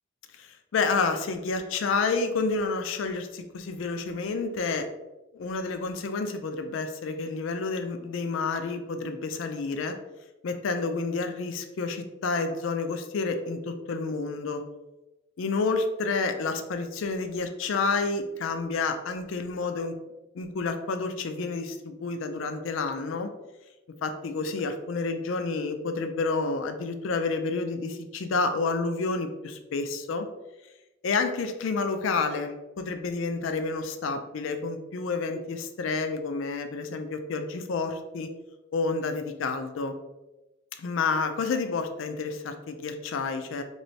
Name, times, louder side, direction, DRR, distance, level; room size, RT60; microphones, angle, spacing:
voice 1, 0.4-4.9 5.3-10.0 10.4-14.6 15.4-19.9 20.3-23.3 24.0-30.3 31.0-38.3 38.7-39.9 40.8-43.6, left 4 dB, 70° left, 8 dB, 0.4 m, -29 dB
3.1 x 3.0 x 2.7 m, 1.0 s
head